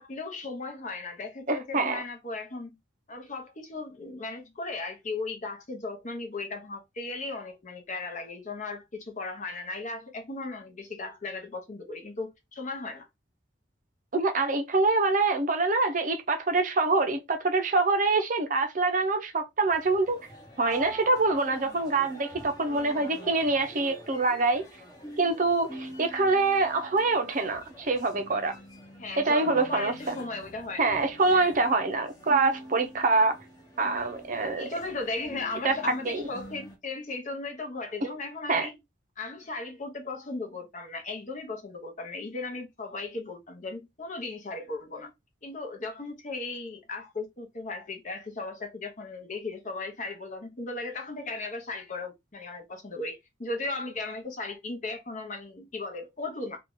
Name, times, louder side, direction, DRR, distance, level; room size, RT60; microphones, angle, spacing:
voice 1, 0.0-2.8 3.1-13.1 29.0-31.0 31.3-31.6 34.6-38.8 39.2-45.1 45.4-56.6, left 3 dB, 40° left, 0.9 m, -36 dB
voice 2, 1.5-2.0 14.1-20.2 20.6-24.6 25.2-28.5 29.2-30.2 30.8-33.3 33.8-34.7 35.6-35.7 36.1-36.2 38.5-38.7, right 3 dB, 45° right, 0.6 m, -25 dB
sound 1, 19.7-36.7, right 1 dB, 20° left, 1.0 m, -45 dB
2.8 x 2.4 x 3.5 m
head